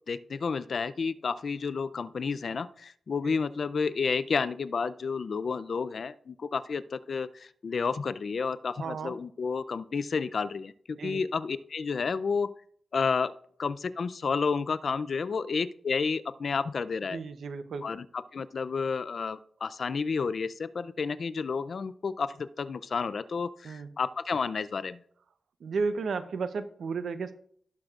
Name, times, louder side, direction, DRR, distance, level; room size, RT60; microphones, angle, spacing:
voice 1, 0.1-10.7 11.0-12.5 12.9-13.3 13.6-17.2 17.8-18.0 18.3-25.0, left 5 dB, 60° left, 15 dB, 0.4 m, -31 dB
voice 2, 8.8-9.1 11.0-11.2 17.1-17.9 23.6-23.9 25.6-27.3, right 4 dB, 90° right, 10 dB, 0.7 m, -33 dB
17.5 x 6.6 x 2.4 m, 0.62 s
wide cardioid pair, 115°, 0 cm